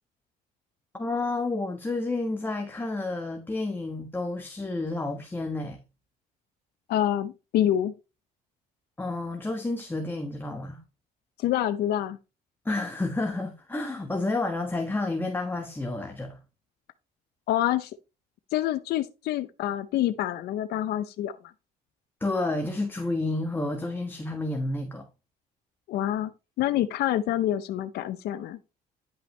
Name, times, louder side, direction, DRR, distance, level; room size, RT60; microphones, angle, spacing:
voice 1, 1.0-5.8 9.0-10.8 12.6-16.4 22.2-25.1, left 2 dB, 10° left, 1.3 m, -30 dB
voice 2, 6.9-7.9 11.4-12.2 17.5-18.0 18.5-21.3 25.9-26.3 26.6-28.6, left 12 dB, 70° left, 0.6 m, -27 dB
10.5 x 5.6 x 3.2 m
cardioid pair, 110°, 17 cm